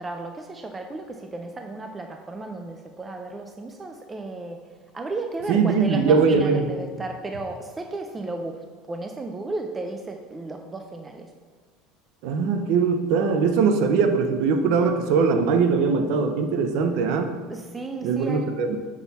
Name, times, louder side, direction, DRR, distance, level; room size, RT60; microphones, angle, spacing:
voice 1, 0.0-4.6 4.9-11.3 17.5-18.5, right 2 dB, 10° right, 4 dB, 0.3 m, -34 dB
voice 2, 5.5-6.7 12.2-17.3 18.0-18.8, right 5 dB, 55° right, 7 dB, 0.6 m, -21 dB
6.2 x 5.5 x 4.1 m, 1.5 s
cardioid pair, 175°, 0 cm